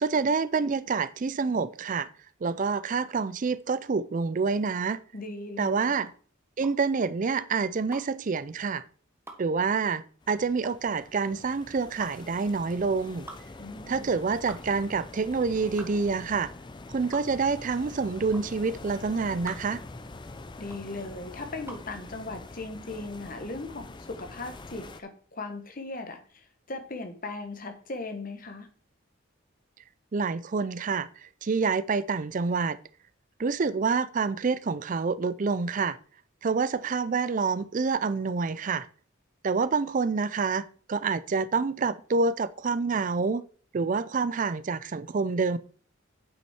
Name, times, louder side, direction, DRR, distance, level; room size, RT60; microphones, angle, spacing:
voice 1, 0.0-2.1 2.4-5.0 5.6-6.1 6.6-8.8 9.4-13.3 13.9-16.5 16.9-19.8 30.1-31.1 31.4-32.8 33.4-36.0 36.4-38.9 39.4-43.4 43.7-45.6, right 4 dB, 40° right, 0.4 m, -27 dB
sound 1, 4.7-22.0, right 2 dB, 10° right, 1.2 m, -48 dB
voice 2, 5.1-5.9 13.6-14.1 20.6-28.7, left 2 dB, 40° left, 1.3 m, -38 dB
sound 2, 10.2-25.0, left 2 dB, 20° left, 0.4 m, -45 dB
8.6 x 6.1 x 4.4 m
head